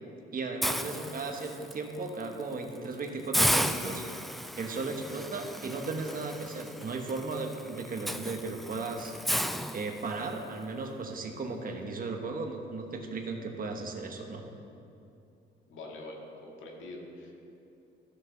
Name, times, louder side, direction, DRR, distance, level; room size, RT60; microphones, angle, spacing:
voice 1, 0.3-4.1 4.5-9.1 9.7-14.5, right 3 dB, 45° right, 3 dB, 1.2 m, -36 dB
Hiss, 0.6-1.7 2.2-2.4 2.8-2.9 3.3-10.4, equal, ahead, 0.3 m, -33 dB
voice 2, 15.7-17.3, left 2 dB, 80° left, -1 dB, 1.8 m, -44 dB
13.5 x 6.6 x 3.9 m, 2.7 s
cardioid pair, 90°, 20 cm